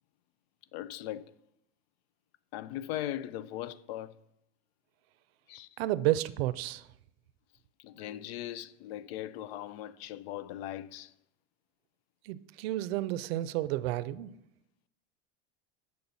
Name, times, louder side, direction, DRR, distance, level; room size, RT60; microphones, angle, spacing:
voice 1, 0.7-1.3 2.5-4.2 5.5-5.7 7.8-11.1, left 13 dB, 90° left, 0.5 m, -39 dB
voice 2, 5.8-6.8 12.2-14.3, right 15 dB, 85° right, 0.5 m, -31 dB
7.0 x 6.5 x 4.0 m
supercardioid pair, 140°, 30 cm